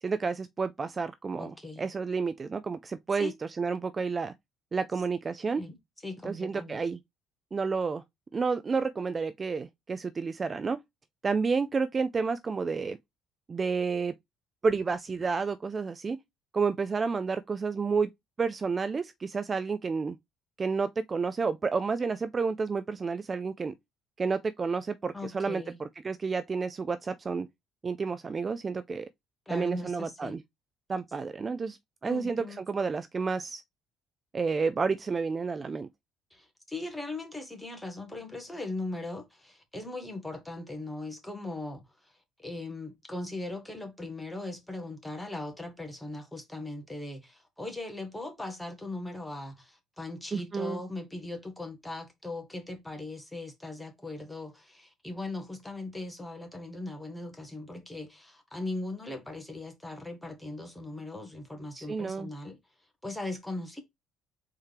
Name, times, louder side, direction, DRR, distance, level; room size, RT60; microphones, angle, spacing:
voice 1, 0.0-4.3 4.7-5.6 6.2-7.0 7.5-8.0 8.3-10.8 11.2-13.0 13.5-14.1 14.6-16.2 16.5-18.1 18.4-20.2 20.6-23.7 24.2-27.5 27.8-29.1 29.5-30.4 30.9-33.6 34.3-35.9 50.3-50.8 61.7-62.3, right 4 dB, 30° right, 0.3 m, -30 dB
voice 2, 1.4-1.8 3.2-3.3 5.6-5.8 6.0-6.8 25.1-25.8 29.5-30.3 32.0-32.6 36.3-42.1 42.4-62.6 63.0-63.8, left 2 dB, 5° left, 1.4 m, -39 dB
4.3 x 3.6 x 3.3 m
cardioid pair, 115°, 0 cm